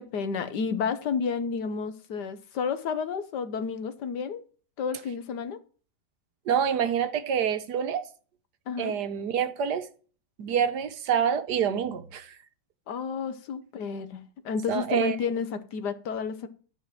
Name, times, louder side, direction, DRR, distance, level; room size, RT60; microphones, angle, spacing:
voice 1, 0.0-4.4 4.8-5.6 8.7-9.0 12.9-16.5, left 6 dB, 65° left, 1.4 m, -31 dB
voice 2, 6.5-8.0 8.8-9.9 10.4-12.3 14.7-15.2, right 8 dB, 65° right, 1.3 m, -27 dB
11.5 x 5.2 x 7.5 m
omnidirectional pair, 2.0 m